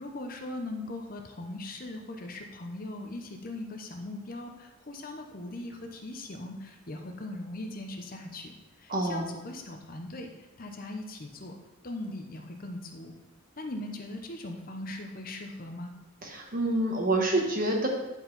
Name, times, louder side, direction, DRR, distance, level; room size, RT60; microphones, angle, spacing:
voice 1, 0.0-10.3 10.6-11.5 11.8-13.1 13.6-15.9, left 2 dB, 40° left, 3 dB, 0.8 m, -40 dB
voice 2, 8.9-9.3 16.2-17.9, right 2 dB, 40° right, 0 dB, 1.3 m, -27 dB
9.9 x 4.5 x 4.0 m, 1.1 s
head